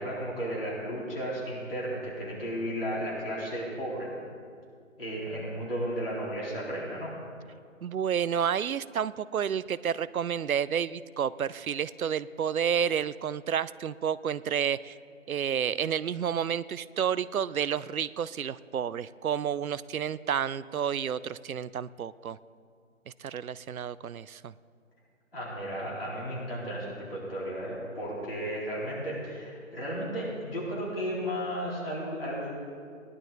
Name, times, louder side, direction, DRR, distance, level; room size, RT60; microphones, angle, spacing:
voice 1, 0.0-4.1 5.0-7.1 25.3-32.5, equal, 45° left, -7 dB, 3.9 m, -34 dB
voice 2, 7.8-15.0 15.3-22.4 23.2-24.5, right 8 dB, 85° right, 18 dB, 0.6 m, -30 dB
19.0 x 11.0 x 4.0 m, 2.2 s
figure-of-eight pair, 180°, 41 cm